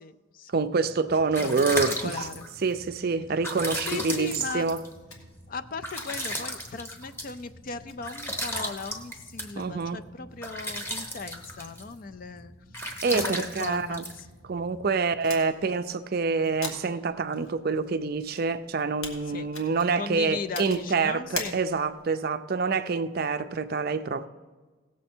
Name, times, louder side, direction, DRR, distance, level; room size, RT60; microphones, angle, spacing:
voice 1, 0.0-0.5 1.4-1.8 2.0-2.4 3.8-4.7 5.5-12.5 13.1-14.1 19.3-19.5 20.0-21.6, left 4 dB, 45° left, 0.4 m, -37 dB
voice 2, 0.5-2.3 2.6-4.8 9.6-10.0 12.8-14.0 14.4-24.3, right 4 dB, 45° right, 0.4 m, -27 dB
sound 1, 0.9-14.9, equal, 10° left, 0.9 m, -36 dB
sound 2, 5.1-22.1, left 3 dB, 90° left, 1.8 m, -46 dB
17.0 x 7.3 x 4.4 m
head